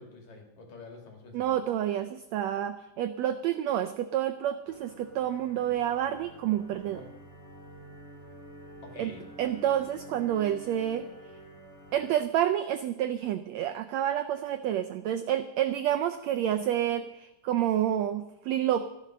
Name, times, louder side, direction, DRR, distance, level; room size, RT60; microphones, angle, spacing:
voice 1, 0.0-1.5 6.9-7.1 8.8-9.3, left 3 dB, 60° left, 2 dB, 3.7 m, -47 dB
voice 2, 1.3-7.0 9.0-9.1 9.4-11.1 11.9-18.9, right 11 dB, 85° right, 9 dB, 1.5 m, -29 dB
sound 1, 4.6-12.1, right 1 dB, 5° left, 2.0 m, -49 dB
15.0 x 11.0 x 6.3 m, 0.97 s
omnidirectional pair, 3.8 m